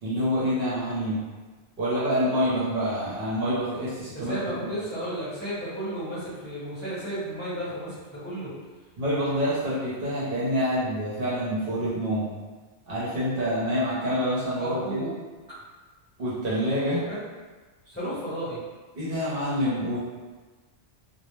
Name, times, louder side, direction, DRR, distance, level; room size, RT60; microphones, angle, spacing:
voice 1, 0.0-1.2 1.8-4.6 9.0-12.3 12.9-15.1 16.2-17.0 18.9-20.0, equal, 60° right, -9 dB, 0.9 m, -27 dB
voice 2, 4.1-8.5 14.5-15.1 17.1-17.2 17.8-18.6, right 1 dB, 10° left, -13 dB, 0.9 m, -33 dB
2.2 x 2.0 x 3.0 m, 1.3 s
omnidirectional pair, 1.1 m